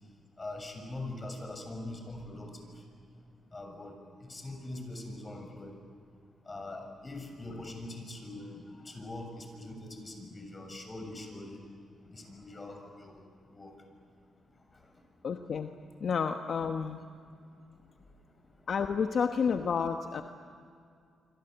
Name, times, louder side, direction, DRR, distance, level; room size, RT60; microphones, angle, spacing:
voice 1, 0.4-2.7 3.5-3.9 4.3-5.7 6.5-11.6 12.1-13.2 13.5-13.7, left 2 dB, 25° left, 4 dB, 7.0 m, -42 dB
voice 2, 15.2-15.7 16.0-17.0 18.7-20.2, left 6 dB, 60° left, 5 dB, 1.2 m, -30 dB
26.5 x 26.0 x 8.1 m, 2.3 s
cardioid pair, 85°, 0 cm